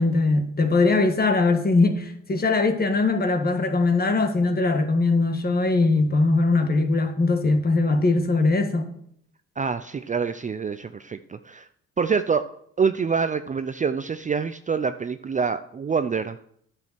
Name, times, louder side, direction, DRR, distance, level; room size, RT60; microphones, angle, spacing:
voice 1, 0.0-8.9, left 3 dB, 30° left, 1.6 m, -21 dB
voice 2, 9.6-11.7 12.0-12.5 12.8-16.4, right 5 dB, 25° right, 0.5 m, -26 dB
10.5 x 6.4 x 6.0 m
cardioid pair, 90°, 30 cm